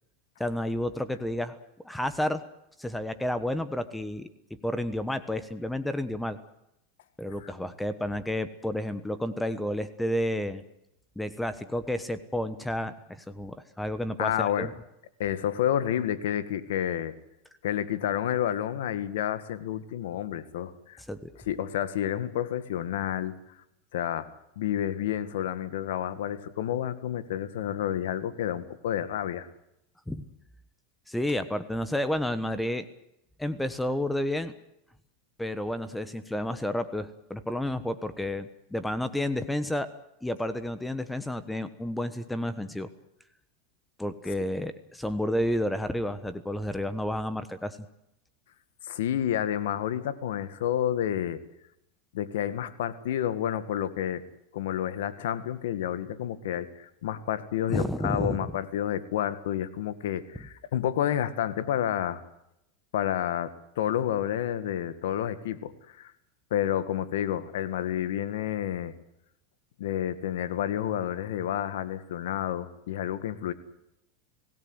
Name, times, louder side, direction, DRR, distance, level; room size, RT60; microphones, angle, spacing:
voice 1, 0.4-1.6 1.8-2.4 2.8-4.3 4.6-6.4 7.2-10.6 11.2-14.7 21.1-21.3 30.1-30.2 31.1-32.9 33.4-34.5 35.4-39.9 40.2-42.9 44.0-47.8 57.7-58.5, left 1 dB, 5° left, 12 dB, 1.3 m, -31 dB
voice 2, 14.2-14.7 15.2-17.2 17.6-21.0 21.5-23.3 23.9-24.3 24.6-29.5 48.9-51.4 52.1-54.2 54.5-62.2 62.9-66.1 66.5-68.9 69.8-73.5, left 10 dB, 80° left, 13 dB, 1.9 m, -30 dB
26.0 x 17.5 x 8.1 m, 0.81 s
supercardioid pair, 130°, 0 cm